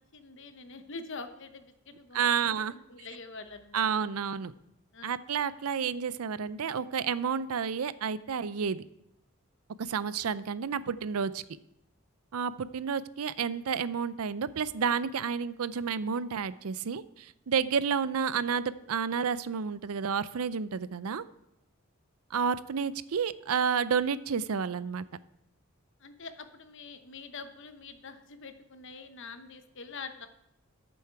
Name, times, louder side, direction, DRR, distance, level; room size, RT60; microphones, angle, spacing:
voice 1, 0.0-4.1 4.9-5.2 26.0-30.3, left 4 dB, 55° left, 9 dB, 0.9 m, -45 dB
voice 2, 2.1-2.7 3.7-4.5 5.0-8.8 9.8-11.4 12.3-21.2 22.3-25.0, right 6 dB, 80° right, 16 dB, 0.5 m, -30 dB
13.5 x 7.1 x 4.6 m, 0.84 s
head